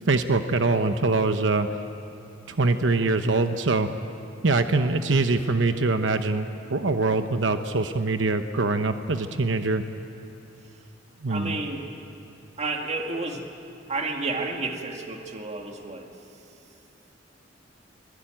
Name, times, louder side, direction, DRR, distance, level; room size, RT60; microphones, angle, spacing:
voice 1, 0.1-1.7 2.5-3.9 4.4-9.8 11.2-11.6, right 3 dB, 70° right, 8 dB, 0.9 m, -23 dB
voice 2, 11.3-11.8 12.6-13.5 13.9-16.1, right 3 dB, 35° right, 2 dB, 2.1 m, -31 dB
28.0 x 20.5 x 9.0 m, 2.7 s
head